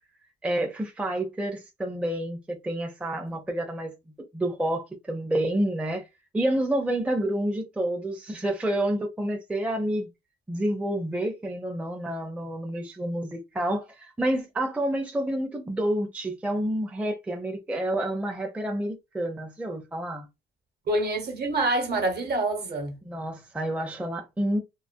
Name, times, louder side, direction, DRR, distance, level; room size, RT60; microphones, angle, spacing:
voice 1, 0.4-3.9 4.3-6.0 6.3-10.1 10.5-20.3 23.0-24.6, right 1 dB, 5° right, 0.5 m, -29 dB
voice 2, 20.9-22.9, right 2 dB, 55° right, 1.0 m, -26 dB
2.3 x 2.2 x 2.5 m
cardioid pair, 90°, 20 cm